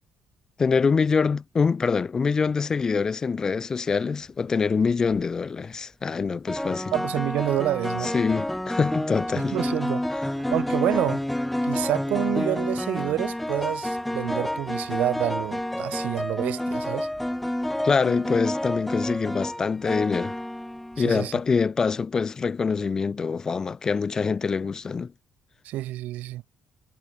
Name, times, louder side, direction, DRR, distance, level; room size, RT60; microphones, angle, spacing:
voice 1, 0.6-6.9 8.0-9.6 17.8-20.4 21.0-25.1, left 5 dB, 20° left, 0.3 m, -25 dB
sound 1, 4.9-5.2 6.5-21.3, left 1 dB, 5° left, 1.0 m, -29 dB
voice 2, 6.9-8.2 9.4-10.1 10.5-11.2 11.7-17.1 21.0-21.4 25.6-26.4, right 15 dB, 70° right, 0.4 m, -28 dB
cardioid pair, 170°, 3 cm